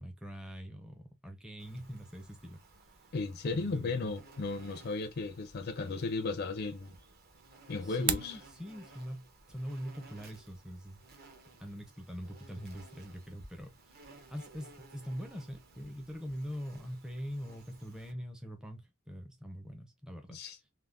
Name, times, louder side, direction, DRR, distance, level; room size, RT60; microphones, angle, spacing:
voice 1, 0.0-2.6 3.5-4.1 7.7-11.0 11.6-13.8 14.3-20.4, equal, 5° right, 0.5 m, -43 dB
Insect, 1.6-18.1, right 3 dB, 45° right, 0.8 m, -57 dB
voice 2, 3.1-6.9 7.7-8.4 20.3-20.6, left 3 dB, 50° left, 0.4 m, -35 dB
sound 1, 7.8-8.4, right 10 dB, 80° right, 0.4 m, -33 dB
3.5 x 2.1 x 2.3 m
head